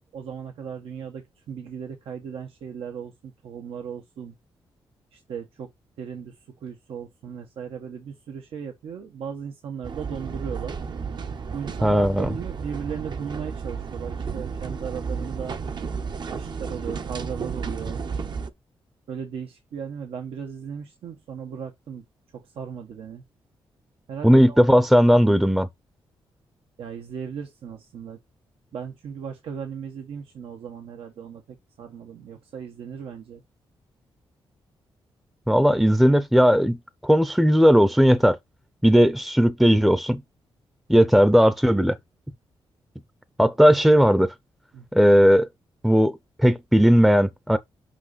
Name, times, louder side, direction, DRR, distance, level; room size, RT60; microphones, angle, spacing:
voice 1, 0.1-4.3 5.1-5.7 6.0-6.3 6.6-10.8 11.5-15.6 16.3-18.0 19.1-22.0 22.3-23.2 24.1-24.7 26.8-28.2 28.7-31.4 31.8-33.4 44.7-44.8, right 7 dB, 85° right, 1.4 m, -36 dB
sound 1, 9.8-18.5, right 5 dB, 50° right, 0.9 m, -32 dB
voice 2, 11.8-12.3 24.2-25.7 35.5-36.8 37.0-38.4 38.8-40.2 40.9-42.0 43.4-44.3 44.9-45.5 45.8-47.6, equal, ahead, 0.6 m, -17 dB
6.1 x 5.5 x 4.1 m
cardioid pair, 105°, 10 cm